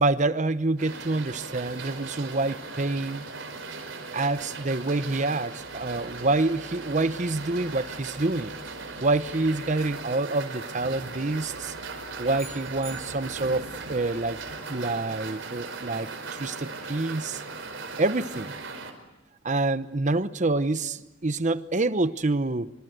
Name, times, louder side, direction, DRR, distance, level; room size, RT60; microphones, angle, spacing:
voice 1, 0.0-3.2 4.1-8.6 9.0-11.7 12.2-14.4 14.7-17.4 18.0-18.5 19.4-22.7, right 2 dB, 40° right, 0.9 m, -27 dB
sound 1, 0.8-18.9, right 4 dB, 70° right, 4.7 m, -38 dB
sound 2, 5.6-10.4 11.0-14.6, equal, 40° left, 5.7 m, -54 dB
sound 3, 12.4-13.8, right 3 dB, 15° right, 2.6 m, -46 dB
26.0 x 26.0 x 8.0 m
head